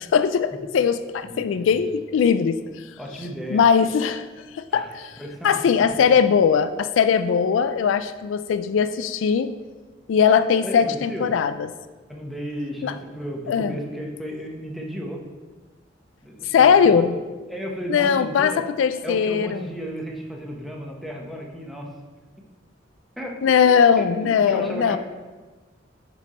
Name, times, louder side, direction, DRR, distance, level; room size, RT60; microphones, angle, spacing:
voice 1, 0.0-2.6 3.5-4.3 4.5-5.2 5.4-9.5 10.1-11.7 12.8-12.9 13.5-13.8 16.4-17.2 17.9-19.7 23.4-25.0, left 7 dB, 85° left, 12 dB, 0.3 m, -20 dB
voice 2, 1.2-1.7 3.0-3.6 4.7-4.9 5.2-5.9 10.6-11.3 12.1-15.2 16.2-17.1 17.5-18.6 19.0-21.9 23.2-23.4 24.0-25.0, equal, ahead, -1 dB, 0.9 m, -34 dB
6.2 x 5.3 x 4.2 m, 1.3 s
head